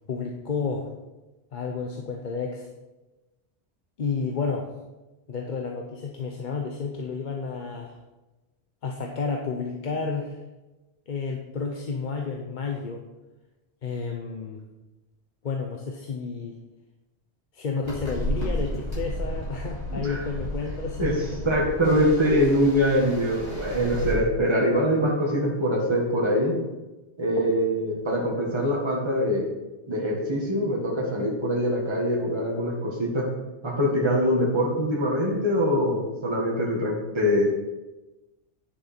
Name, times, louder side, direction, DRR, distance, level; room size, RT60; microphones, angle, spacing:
voice 1, 0.1-0.9 1.5-2.7 4.0-4.7 5.3-8.0 8.8-10.4 11.1-13.0 13.8-14.6 15.4-16.6 17.5-21.3, left 4 dB, 50° left, 2 dB, 0.9 m, -31 dB
sound 1, 17.8-24.1, equal, 25° left, 3.3 m, -33 dB
voice 2, 19.9-20.2 21.0-21.1 21.4-26.6 27.2-29.4 29.9-33.3 33.6-37.5, equal, 25° right, -2 dB, 1.7 m, -23 dB
9.7 x 6.6 x 4.3 m, 1.1 s
omnidirectional pair, 1.1 m